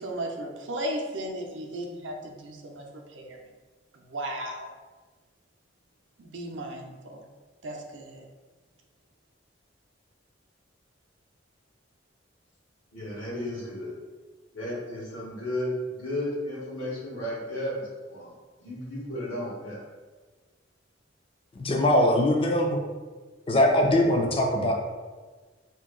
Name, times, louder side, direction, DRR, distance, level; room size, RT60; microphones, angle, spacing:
voice 1, 0.0-3.4 4.0-4.7 6.2-7.2 7.6-8.2, right 1 dB, 70° right, 2 dB, 0.5 m, -35 dB
voice 2, 12.9-13.9 14.5-17.8 18.1-18.3 18.6-19.8, left 1 dB, 80° left, -7 dB, 1.3 m, -33 dB
voice 3, 21.6-22.8 23.5-24.7, left 1 dB, 30° left, 2 dB, 0.4 m, -22 dB
2.8 x 2.6 x 3.7 m, 1.4 s
head